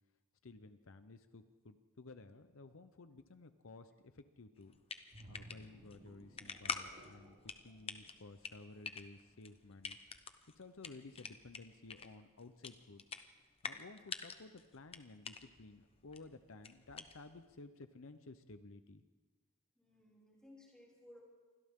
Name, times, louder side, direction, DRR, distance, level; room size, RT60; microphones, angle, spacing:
voice 1, 0.4-4.8 5.3-10.0 10.6-13.1 13.6-19.0, left 3 dB, 65° left, 10 dB, 0.8 m, -55 dB
sound 1, 4.6-17.5, left 5 dB, 25° left, 0.9 m, -48 dB
sound 2, 5.1-8.7 9.1-9.3, right 1 dB, 45° right, 5.2 m, -58 dB
voice 2, 19.8-21.2, left 1 dB, 5° left, -4 dB, 6.1 m, -61 dB
28.0 x 25.0 x 3.7 m, 1.4 s
head